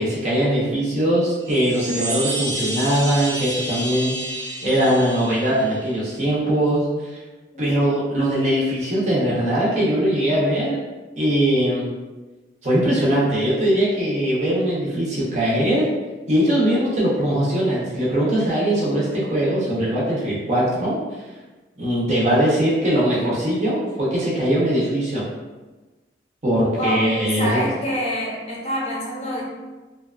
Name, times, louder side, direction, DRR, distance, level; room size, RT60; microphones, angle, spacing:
voice 1, 0.0-4.2 4.6-7.2 7.6-10.8 11.2-11.9 12.6-15.9 16.3-21.0 21.8-25.2 26.4-27.7, right 1 dB, 40° right, -7 dB, 0.6 m, -21 dB
Chime, 1.4-6.1, right 1 dB, 85° right, 0.6 m, -30 dB
voice 2, 26.8-29.4, equal, 35° left, -4 dB, 0.6 m, -26 dB
2.7 x 2.2 x 2.3 m, 1.2 s
head